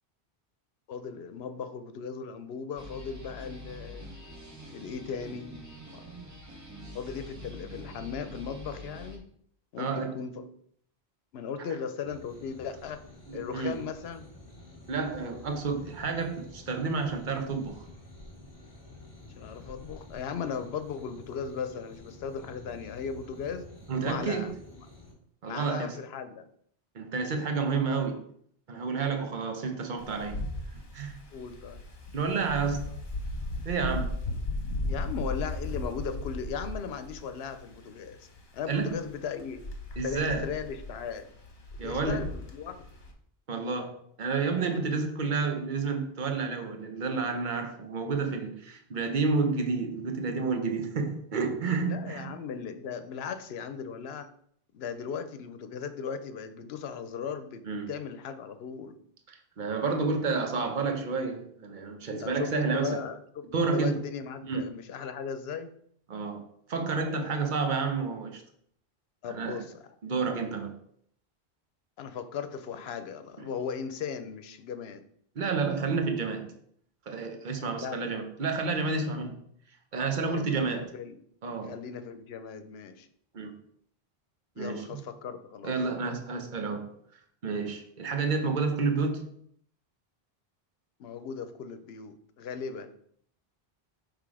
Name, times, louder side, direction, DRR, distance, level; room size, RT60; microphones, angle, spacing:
voice 1, 0.9-4.1 4.7-5.6 5.9-6.1 6.9-9.2 9.7-10.5 11.3-13.0 13.3-14.3 19.4-23.6 24.0-24.5 24.8-24.9 25.4-26.4 31.3-31.8 34.9-38.3 38.5-39.6 40.0-41.3 41.7-42.8 51.8-54.3 54.7-59.0 62.2-65.7 69.2-69.8 72.0-75.0 77.8-78.2 80.3-81.2 81.6-83.1 84.6-85.7 91.0-92.9, left 6 dB, 80° left, 11 dB, 0.9 m, -37 dB
sound 1, 2.8-9.2, equal, 15° right, 1.0 m, -45 dB
voice 2, 9.8-10.1 13.3-13.8 14.9-17.8 23.9-24.6 25.4-26.0 26.9-28.3 28.7-30.5 30.7-31.2 32.1-32.9 33.6-34.1 38.7-39.0 40.0-40.5 41.8-42.3 43.5-52.3 57.6-57.9 59.3-63.0 63.5-64.0 64.4-64.6 66.1-68.4 69.3-69.6 70.0-70.8 75.4-76.5 77.1-79.3 79.9-80.9 81.4-81.7 83.3-83.6 84.6-85.0 85.6-86.9 87.4-89.3, right 4 dB, 50° right, 6 dB, 1.0 m, -30 dB
sound 2, 12.0-25.1, left 2 dB, 20° left, 1.7 m, -50 dB
Wind, 30.0-43.1, left 2 dB, 55° left, 1.2 m, -37 dB
5.9 x 3.4 x 4.8 m, 0.65 s
omnidirectional pair, 1.0 m